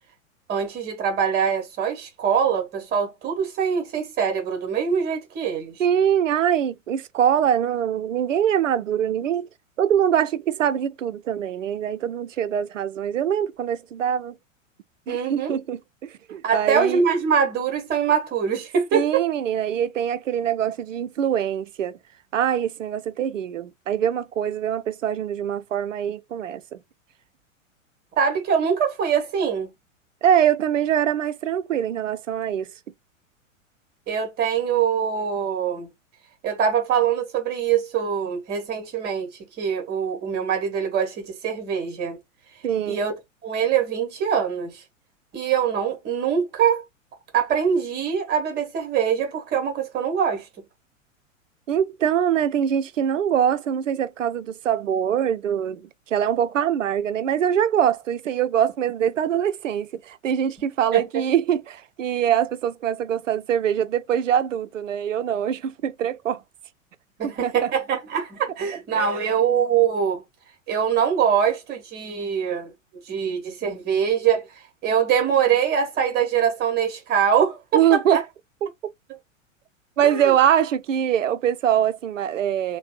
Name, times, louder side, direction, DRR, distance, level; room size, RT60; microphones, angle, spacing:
voice 1, 0.5-5.8 15.1-15.6 16.4-19.2 28.2-29.7 34.1-35.9 36.4-39.3 39.6-42.2 42.9-43.1 43.4-44.8 45.3-46.8 47.3-50.5 60.9-61.0 67.2-70.2 70.7-72.7 73.0-78.2 80.0-80.3, right 7 dB, 25° right, 1.3 m, -23 dB
voice 2, 5.8-9.5 9.8-14.4 15.1-17.0 18.9-22.0 22.3-26.8 30.2-32.7 42.6-43.0 51.7-66.4 67.2-67.7 68.9-69.3 77.7-78.2 80.0-82.8, right 9 dB, 70° right, 0.5 m, -23 dB
3.2 x 2.2 x 3.0 m
figure-of-eight pair, 100°, 39 cm